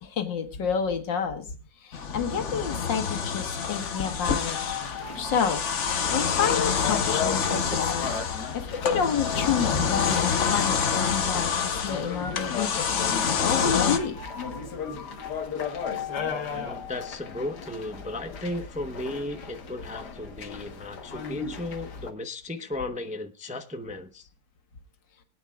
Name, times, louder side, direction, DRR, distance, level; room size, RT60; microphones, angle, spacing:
voice 1, 0.0-1.5 1.8-4.6 5.2-5.6 6.1-8.1 8.5-13.0 13.4-14.2, left 7 dB, 90° left, 5 dB, 2.1 m, -29 dB
sound 1, 1.9-14.0, left 6 dB, 50° left, 1.2 m, -27 dB
sound 2, 3.6-22.1, left 6 dB, 65° left, 1.9 m, -35 dB
voice 2, 16.3-24.3, left 2 dB, 10° right, 6 dB, 0.4 m, -35 dB
24.0 x 9.0 x 2.4 m, 0.33 s
omnidirectional pair, 1.9 m